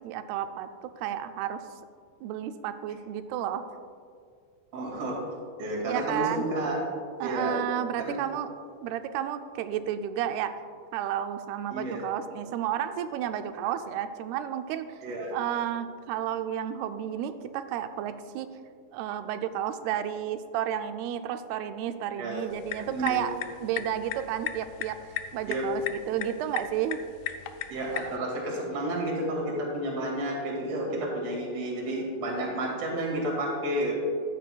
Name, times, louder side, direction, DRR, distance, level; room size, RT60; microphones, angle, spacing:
voice 1, 0.0-1.6 2.2-3.6 5.8-6.5 7.2-8.5 8.8-10.5 10.9-15.0 15.3-18.5 18.9-23.4 23.6-27.0, right 10 dB, 90° right, 9 dB, 2.5 m, -32 dB
voice 2, 4.7-5.2 5.6-6.8 7.2-7.6 8.0-8.2 11.7-12.0 15.0-15.3 22.2-22.5 22.9-23.3 25.5-25.6 27.7-33.9, right 1 dB, 45° right, -3 dB, 2.7 m, -31 dB
sound 1, 22.5-28.2, left 11 dB, 85° left, 2.6 m, -37 dB
13.5 x 10.0 x 2.3 m, 2.2 s
omnidirectional pair, 4.5 m